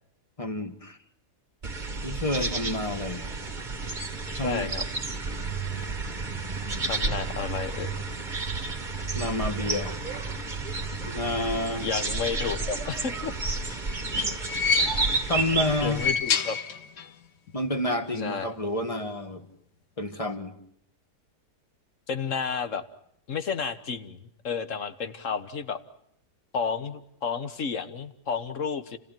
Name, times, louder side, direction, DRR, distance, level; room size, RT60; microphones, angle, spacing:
voice 1, 0.4-1.0 2.0-3.3 4.4-4.7 5.8-6.0 9.1-10.0 11.0-11.9 15.3-16.0 17.5-19.4 20.0-20.5, left 1 dB, 20° left, 7 dB, 1.7 m, -29 dB
sound 1, 1.6-16.1, right 3 dB, 30° right, 1.7 m, -31 dB
voice 2, 4.4-4.8 6.9-8.0 11.7-13.3 14.1-14.4 15.8-16.6 18.2-18.5 22.1-22.8 23.3-25.8 26.5-29.0, left 6 dB, 50° left, 11 dB, 1.6 m, -31 dB
sound 2, 13.4-15.3 15.8-17.2 17.5-17.6 18.7-18.8, left 6 dB, 85° left, 1.8 m, -29 dB
29.5 x 16.0 x 9.1 m, 0.70 s
omnidirectional pair, 1.7 m